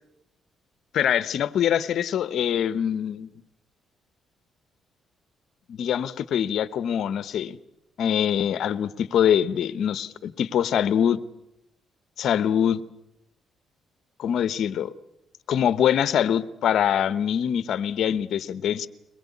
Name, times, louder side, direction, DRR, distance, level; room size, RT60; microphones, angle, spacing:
voice 1, 0.9-3.3 5.7-7.6 8.0-11.2 12.2-12.8 14.2-14.9 15.5-18.9, left 9 dB, 70° left, 15 dB, 0.9 m, -24 dB
23.0 x 19.5 x 8.4 m, 0.86 s
cardioid pair, 90°, 0 cm